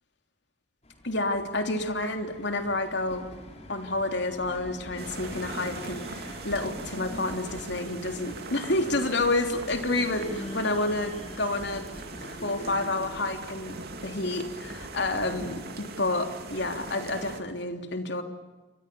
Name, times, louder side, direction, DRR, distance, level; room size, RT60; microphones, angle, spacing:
sound 1, 0.8-15.7, left 1 dB, 35° left, 4.6 m, -44 dB
voice 1, 1.0-3.3 3.7-11.9 12.4-18.2, left 2 dB, 65° left, 5 dB, 3.3 m, -29 dB
sound 2, 5.0-17.4, right 3 dB, 55° right, 2.6 m, -41 dB
28.5 x 25.0 x 7.1 m, 1.2 s
head